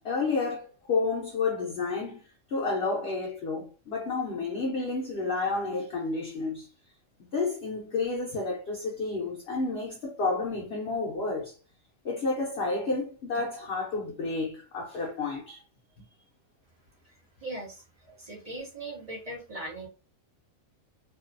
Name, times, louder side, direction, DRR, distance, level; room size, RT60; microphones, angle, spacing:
voice 1, 0.0-2.2 2.5-6.7 7.2-11.5 12.0-15.6, left 3 dB, 60° left, 0.7 m, -30 dB
voice 2, 17.4-17.8 18.2-19.9, right 1 dB, 40° right, 0.5 m, -39 dB
2.5 x 2.3 x 2.5 m
omnidirectional pair, 1.5 m